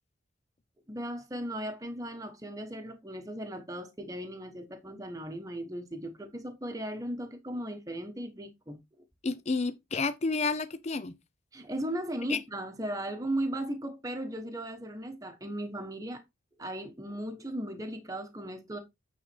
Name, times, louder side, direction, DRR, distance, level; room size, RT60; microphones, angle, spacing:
voice 1, 0.9-8.8 11.5-16.2 16.6-18.8, right 1 dB, 15° right, 1.1 m, -37 dB
voice 2, 9.2-11.1 12.3-12.4, left 4 dB, 30° left, 0.5 m, -30 dB
8.9 x 4.0 x 4.4 m
head